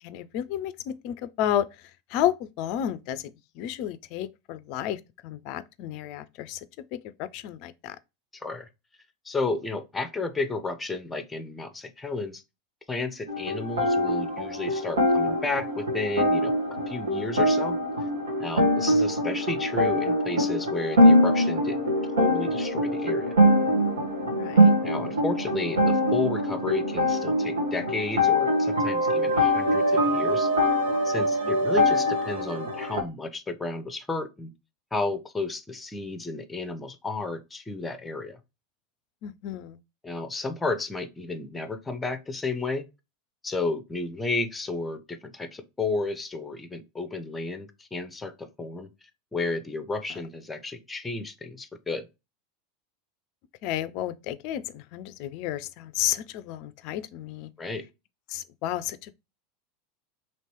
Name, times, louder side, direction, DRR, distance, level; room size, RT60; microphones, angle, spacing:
voice 1, 0.0-6.7 6.9-8.0 17.2-17.3 24.2-24.7 31.4-31.5 39.2-39.8 50.1-50.2 53.6-57.5 58.3-59.1, left 11 dB, 50° left, 0.4 m, -32 dB
voice 2, 8.3-8.7 9.2-12.4 12.9-16.5 16.9-17.8 18.4-23.3 24.8-30.5 31.0-34.5 34.9-38.4 40.0-42.9 43.4-48.9 49.3-52.1 57.6-57.9, left 3 dB, 15° left, 0.7 m, -32 dB
sound 1, 13.3-33.0, equal, 75° right, 1.3 m, -23 dB
3.1 x 3.0 x 4.3 m
figure-of-eight pair, 80°, 0 cm